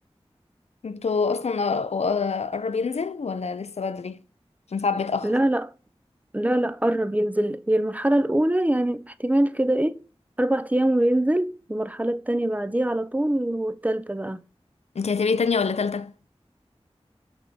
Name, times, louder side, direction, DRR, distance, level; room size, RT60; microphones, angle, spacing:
voice 1, 0.8-4.2 4.7-5.3 14.9-16.1, left 5 dB, 85° left, 0.5 m, -26 dB
voice 2, 5.2-5.7 6.3-10.0 10.4-14.4, right 1 dB, 15° right, 0.5 m, -23 dB
5.9 x 3.5 x 5.3 m
wide cardioid pair, 50°, 11 cm